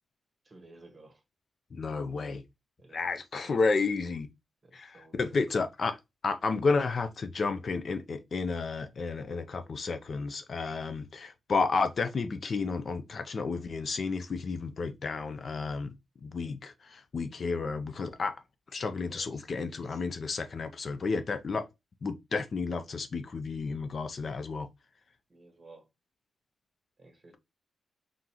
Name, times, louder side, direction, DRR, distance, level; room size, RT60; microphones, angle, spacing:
voice 1, 0.4-1.2 2.8-3.1 3.4-3.9 4.6-5.5 19.1-19.5 25.3-25.9 27.0-27.4, right 2 dB, 25° right, 1.4 m, -55 dB
voice 2, 1.7-2.4 2.9-4.3 4.7-6.0 6.2-15.9 16.2-18.3 18.7-21.7 22.0-24.7, left 4 dB, 45° left, 0.5 m, -31 dB
3.9 x 3.7 x 2.9 m
wide cardioid pair, 135°, 0 cm